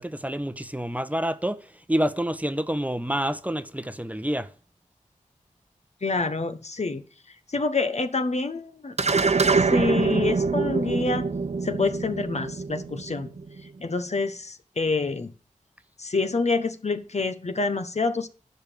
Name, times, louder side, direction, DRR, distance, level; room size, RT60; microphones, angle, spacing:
voice 1, 0.0-4.5, equal, 10° right, 0.9 m, -28 dB
voice 2, 6.0-7.0 7.5-8.9 9.6-11.3 11.6-13.3 13.8-15.3 16.0-18.3, left 3 dB, 55° left, 1.1 m, -27 dB
sound 1, 9.0-13.6, right 4 dB, 55° right, 1.0 m, -24 dB
10.5 x 5.4 x 7.0 m
cardioid pair, 45°, 14 cm